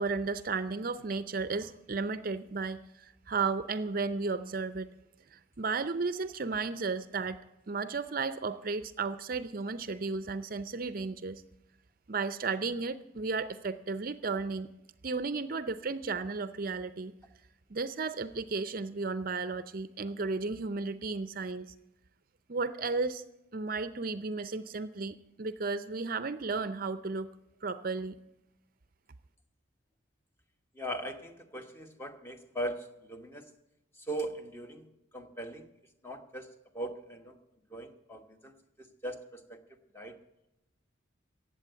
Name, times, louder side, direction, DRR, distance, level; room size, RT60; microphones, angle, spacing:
voice 1, 0.0-4.9 5.3-7.4 7.7-11.4 12.1-14.7 15.0-17.1 17.7-21.7 22.5-23.2 23.5-27.3 27.6-28.2, right 4 dB, 45° right, 13 dB, 0.6 m, -34 dB
voice 2, 30.7-33.5 34.0-35.7 36.0-37.4 37.7-39.6 39.9-40.2, right 1 dB, 10° left, 6 dB, 1.1 m, -40 dB
16.0 x 7.7 x 9.1 m, 0.93 s
head